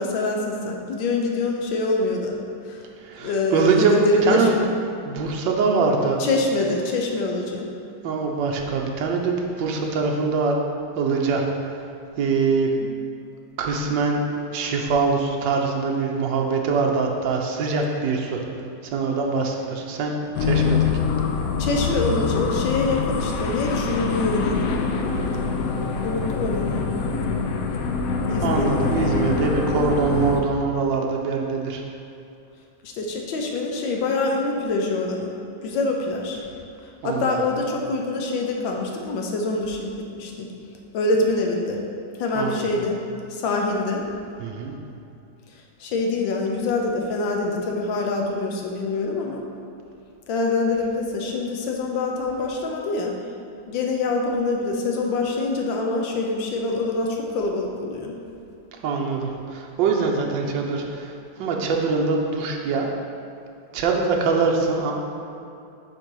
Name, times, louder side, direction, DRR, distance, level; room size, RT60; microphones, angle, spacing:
voice 1, 0.0-2.3 2.6-2.8 3.2-4.7 6.2-7.7 19.3-19.7 21.6-24.9 26.0-26.9 28.3-29.0 32.8-35.3 35.6-36.4 36.8-40.5 40.9-41.8 42.2-43.0 43.3-44.0 45.8-49.4 50.3-53.1 53.7-58.1, left 3 dB, 90° left, 1 dB, 1.6 m, -25 dB
voice 2, 3.0-4.5 5.0-6.2 8.0-10.5 11.0-11.8 12.2-12.7 13.6-14.2 14.5-18.4 18.8-20.1 20.4-20.9 28.4-31.8 37.0-37.4 42.3-42.7 44.4-44.7 58.8-62.9 63.7-64.9, right 4 dB, 75° right, 0 dB, 1.5 m, -23 dB
sound 1, 20.3-30.4, left 5 dB, 70° left, 0.8 m, -24 dB
7.7 x 4.6 x 4.7 m, 2.7 s
omnidirectional pair, 2.0 m